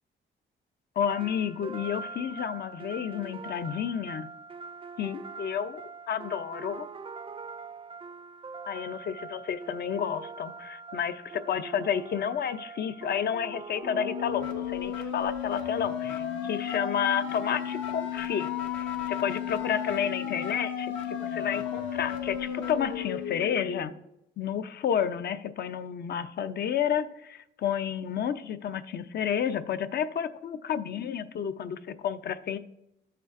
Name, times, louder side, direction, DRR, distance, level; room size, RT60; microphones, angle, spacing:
voice 1, 1.0-4.3 5.0-5.8 6.1-6.9 8.7-18.5 18.8-24.0 24.4-32.6, left 8 dB, 55° left, 12 dB, 0.6 m, -31 dB
sound 1, 1.1-15.0, right 4 dB, 25° right, 0.4 m, -43 dB
sound 2, 13.8-23.8, left 9 dB, 75° left, 1.3 m, -33 dB
13.5 x 6.6 x 2.5 m, 0.83 s
cardioid pair, 90°, 20 cm